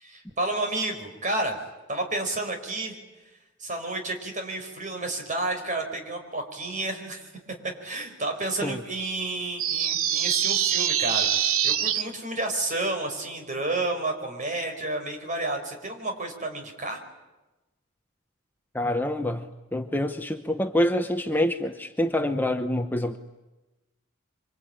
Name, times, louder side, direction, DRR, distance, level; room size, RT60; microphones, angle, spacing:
voice 1, 0.0-1.6 1.9-3.0 3.6-7.3 7.8-17.0, right 2 dB, 40° right, 4 dB, 4.9 m, -31 dB
sound 1, 9.6-12.0, right 10 dB, 85° right, 1.0 m, -24 dB
voice 2, 18.7-23.2, left 1 dB, 10° left, 6 dB, 0.9 m, -26 dB
26.0 x 25.0 x 8.9 m, 1.1 s
head